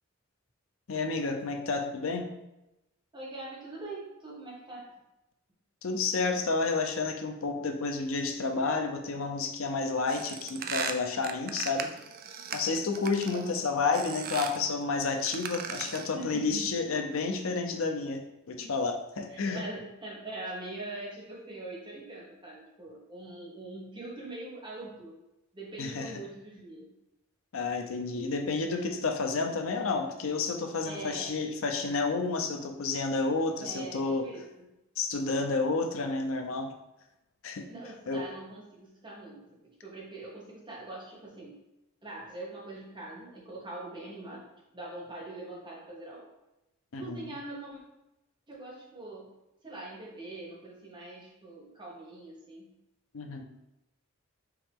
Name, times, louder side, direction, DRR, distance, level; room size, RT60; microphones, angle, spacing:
voice 1, 0.9-2.3 5.8-11.9 12.5-19.6 25.8-26.1 27.5-34.3 35.0-36.7 37.4-37.7 38.1-38.2 46.9-47.3 53.1-53.4, left 4 dB, 70° left, 4 dB, 0.6 m, -30 dB
voice 2, 3.1-4.9 13.3-13.6 16.1-16.7 18.5-18.7 19.3-25.1 25.5-26.9 30.8-31.3 33.6-34.7 37.7-41.5 42.0-44.5 44.7-46.3 47.0-47.8 48.5-49.3 49.6-52.7, right 2 dB, 25° right, -4 dB, 1.2 m, -43 dB
sound 1, 10.1-13.5 13.9-14.6 15.2-16.2, right 7 dB, 45° right, 0.4 m, -38 dB
4.7 x 2.9 x 3.6 m, 0.92 s
head